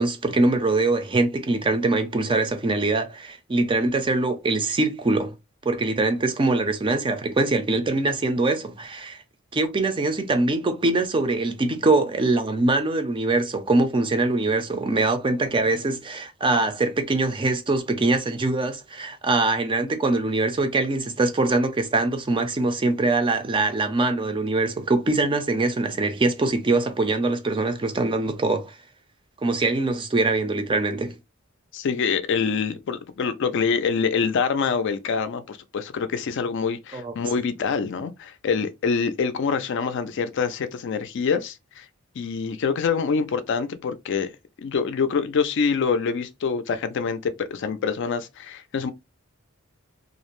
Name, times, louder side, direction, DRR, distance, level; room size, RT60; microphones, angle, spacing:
voice 1, 0.0-5.3 5.6-9.2 9.5-28.8 29.4-31.2 36.9-37.1, right 2 dB, 25° right, 0.4 m, -23 dB
voice 2, 31.7-41.8 42.2-44.3 44.6-48.9, left 5 dB, 60° left, 0.4 m, -25 dB
2.5 x 2.0 x 2.9 m
head